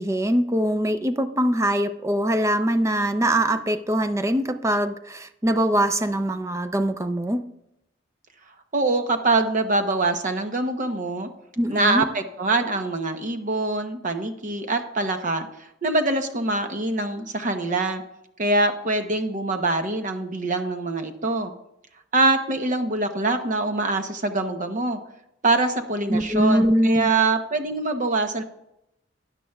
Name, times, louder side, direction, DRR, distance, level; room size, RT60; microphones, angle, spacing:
voice 1, 0.0-7.4 11.6-12.1 26.1-27.1, right 1 dB, 15° right, 10 dB, 0.5 m, -22 dB
voice 2, 8.7-11.3 11.7-18.0 18.4-21.5 22.1-25.0 25.4-28.4, right 2 dB, 45° right, 7 dB, 0.9 m, -24 dB
13.0 x 9.9 x 2.3 m, 0.82 s
head